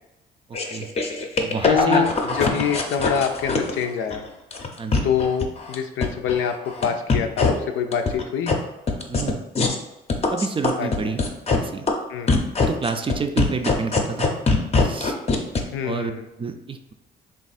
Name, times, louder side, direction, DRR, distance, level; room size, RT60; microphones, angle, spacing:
sound 1, 0.5-4.2 4.5-5.7 6.0-6.8 7.1-7.5 7.9-8.5 8.9-9.7 10.1-11.6 11.9-12.0 12.3-15.6, left 3 dB, 30° left, 0.6 m, -21 dB
voice 1, 0.5-0.9 1.4-2.4 4.8-5.1 9.1-9.4 10.3-11.2 11.6-11.9 12.6-14.3 14.7-15.1 15.8-16.1 16.4-16.9, right 4 dB, 25° right, 7 dB, 0.4 m, -29 dB
voice 2, 1.6-4.2 5.0-8.6 10.8-10.9 12.1-12.4 15.7-16.2, left 7 dB, 80° left, 6 dB, 0.5 m, -25 dB
3.5 x 2.4 x 4.0 m, 0.95 s
cardioid pair, 90°, 20 cm